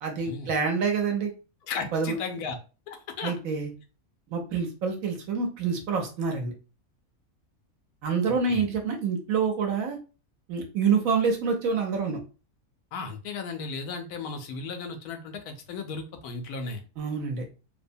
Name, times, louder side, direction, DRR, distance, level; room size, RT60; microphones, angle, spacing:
voice 1, 0.0-1.3 1.9-2.2 3.2-3.7 4.3-6.5 8.0-10.0 10.5-12.2 17.0-17.5, right 5 dB, 70° right, 3 dB, 1.0 m, -27 dB
voice 2, 1.7-2.6 2.9-3.3 8.3-8.6 12.9-16.8, left 4 dB, 85° left, 5 dB, 1.1 m, -35 dB
2.9 x 2.0 x 2.6 m, 0.33 s
omnidirectional pair, 1.6 m